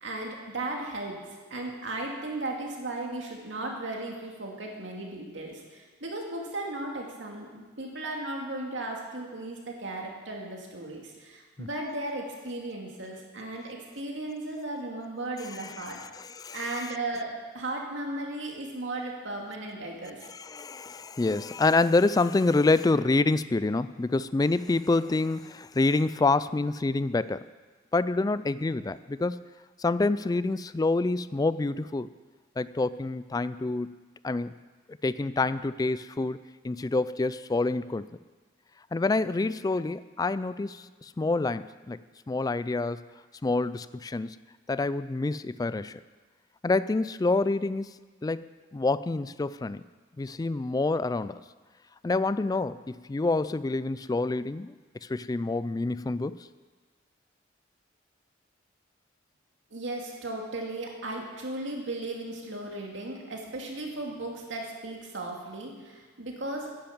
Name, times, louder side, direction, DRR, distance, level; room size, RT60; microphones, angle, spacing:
voice 1, 0.0-1.2 1.5-16.0 16.5-20.3 59.7-66.8, right 2 dB, 70° right, 0 dB, 2.4 m, -36 dB
voice 2, 16.1-16.6 20.3-27.5 27.9-29.4 29.8-32.1 32.6-33.9 34.2-34.5 35.0-38.1 38.9-42.0 42.3-43.0 43.4-44.4 44.7-46.0 46.6-47.9 48.2-48.4 48.7-49.8 50.2-51.4 52.0-54.7 55.1-56.4, left 3 dB, 20° left, 16 dB, 0.3 m, -27 dB
10.5 x 10.5 x 7.2 m, 1.4 s
head